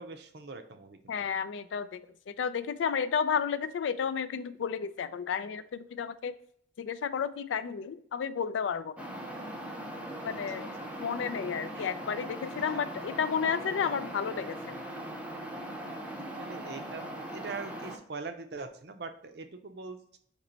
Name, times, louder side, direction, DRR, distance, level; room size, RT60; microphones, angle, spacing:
voice 1, 0.0-1.1 10.2-10.3 11.7-11.9 16.4-20.2, right 4 dB, 60° right, 8 dB, 0.5 m, -42 dB
voice 2, 1.1-2.0 2.3-6.3 6.8-9.0 10.2-10.7 11.0-14.7, left 7 dB, 80° left, 13 dB, 0.4 m, -32 dB
sound 1, 9.0-18.0, right 1 dB, 5° right, 0.6 m, -40 dB
4.4 x 3.0 x 3.9 m, 0.64 s
head